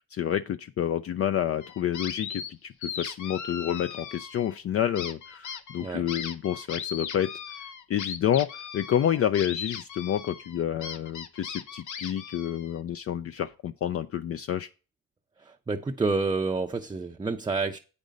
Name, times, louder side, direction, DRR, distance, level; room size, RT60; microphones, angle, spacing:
voice 1, 0.0-7.3 7.9-14.7, left 10 dB, 50° left, 0.5 m, -29 dB
sound 1, 1.6-2.5 2.8-4.6 5.0-12.8, left 7 dB, 75° left, 0.9 m, -38 dB
voice 2, 15.4-17.8, right 3 dB, 15° right, 0.5 m, -29 dB
8.2 x 5.2 x 5.1 m
cardioid pair, 90°, 30 cm